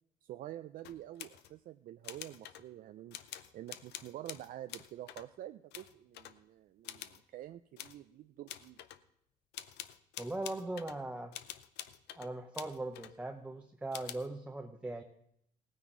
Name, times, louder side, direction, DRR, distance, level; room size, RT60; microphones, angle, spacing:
voice 1, 0.2-3.2 3.5-8.8, right 13 dB, 55° right, 10 dB, 0.4 m, -48 dB
sound 1, 0.8-1.6 2.0-2.6 3.1-5.3 5.7-6.4 6.8-7.2 7.8-8.0 8.5-9.0 9.5-11.0 11.3-13.1 13.9-14.3, left 12 dB, 80° left, 0.6 m, -47 dB
voice 2, 10.2-11.3 12.2-15.0, right 2 dB, 5° right, 4 dB, 0.7 m, -40 dB
17.0 x 9.5 x 3.9 m, 0.73 s
cardioid pair, 110°, 17 cm